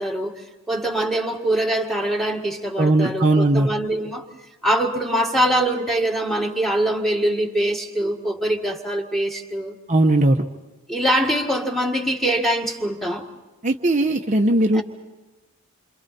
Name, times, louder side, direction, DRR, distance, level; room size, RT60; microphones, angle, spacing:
voice 1, 0.0-4.3 4.6-9.7 10.9-13.3 14.7-14.8, right 1 dB, ahead, 2 dB, 1.8 m, -23 dB
voice 2, 2.8-3.7 9.9-10.4 13.6-14.8, right 2 dB, 35° right, 2 dB, 0.9 m, -18 dB
28.5 x 26.0 x 4.2 m, 1.2 s
head